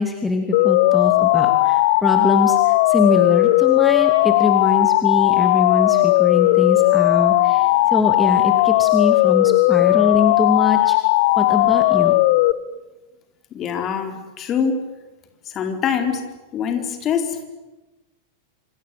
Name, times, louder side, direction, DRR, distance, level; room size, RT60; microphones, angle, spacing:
voice 1, 0.0-11.0 11.4-12.1, left 3 dB, 10° left, 4 dB, 2.9 m, -23 dB
sound 1, 0.5-12.5, left 17 dB, 50° left, 1.0 m, -16 dB
voice 2, 13.5-14.8 15.5-16.2 16.5-17.4, left 7 dB, 30° left, 5 dB, 4.3 m, -24 dB
27.0 x 27.0 x 8.0 m, 1.1 s
figure-of-eight pair, 90°, 0 cm